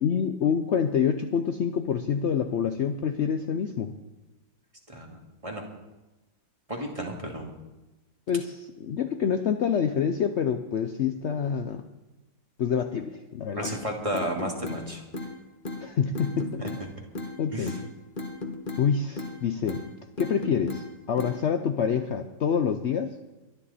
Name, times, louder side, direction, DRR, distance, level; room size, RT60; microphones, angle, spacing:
voice 1, 0.0-3.9 8.3-11.8 12.6-13.7 15.8-16.6 17.4-17.8 18.8-19.8 20.2-23.1, left 7 dB, 75° left, 7 dB, 0.6 m, -27 dB
voice 2, 4.9-5.6 6.7-7.6 13.6-15.0 16.6-16.7 17.5-17.7, right 1 dB, 20° right, 0 dB, 2.2 m, -33 dB
sound 1, 13.6-13.8 14.1-14.8 15.1-15.3 15.6-15.8 16.1-16.8 17.1-17.3 17.7-17.8 18.2-18.9 19.2-19.4 19.7-19.9 20.2-20.8 21.2-21.4, left 2 dB, 30° left, 1.5 m, -34 dB
23.0 x 10.5 x 4.2 m, 1.1 s
omnidirectional pair, 2.0 m